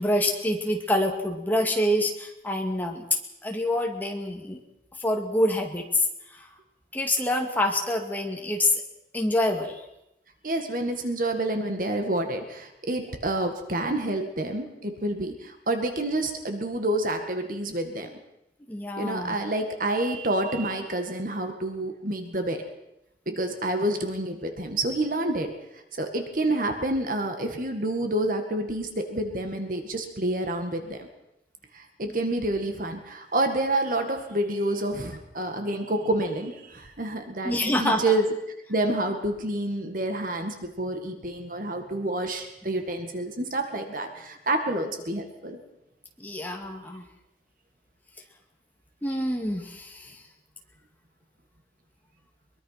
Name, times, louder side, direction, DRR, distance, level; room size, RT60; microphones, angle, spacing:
voice 1, 0.0-3.1 3.4-4.6 5.0-5.9 6.4-6.5 6.9-8.8 9.1-9.8 18.7-19.4 37.4-38.0 46.2-47.0 49.0-50.1, left 1 dB, 10° left, 2 dB, 2.4 m, -26 dB
voice 2, 10.4-18.1 19.0-22.6 23.3-25.5 26.0-31.1 31.7-38.3 38.7-45.6, right 1 dB, 50° right, 6 dB, 2.0 m, -28 dB
22.5 x 22.0 x 5.9 m, 0.86 s
head